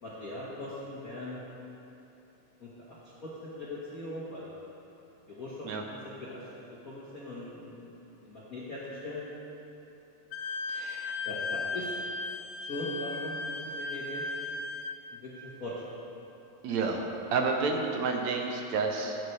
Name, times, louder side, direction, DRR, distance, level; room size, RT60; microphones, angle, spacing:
voice 1, 0.0-1.4 2.6-4.5 5.3-6.5 6.8-8.0 8.2-9.3 11.2-11.9 12.6-14.2 15.1-15.9, left 1 dB, 55° left, -8 dB, 0.9 m, -40 dB
Wind instrument woodwind instrument, 10.3-15.0, left 3 dB, 90° left, 2.1 m, -36 dB
voice 2, 10.7-11.2 16.6-19.2, right 4 dB, 75° right, 3 dB, 1.8 m, -30 dB
14.0 x 8.8 x 3.3 m, 3.0 s
omnidirectional pair, 3.5 m